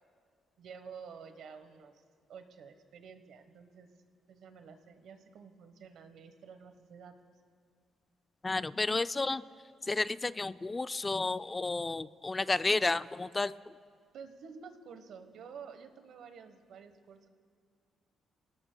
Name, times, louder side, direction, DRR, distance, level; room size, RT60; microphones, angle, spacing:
voice 1, 0.6-2.0 2.3-3.9 4.3-7.1 14.1-17.3, right 6 dB, 70° right, 9 dB, 1.1 m, -50 dB
voice 2, 8.4-9.4 9.9-13.7, left 3 dB, 25° left, 14 dB, 0.3 m, -31 dB
29.0 x 18.0 x 2.2 m, 2.1 s
cardioid pair, 90°, 0 cm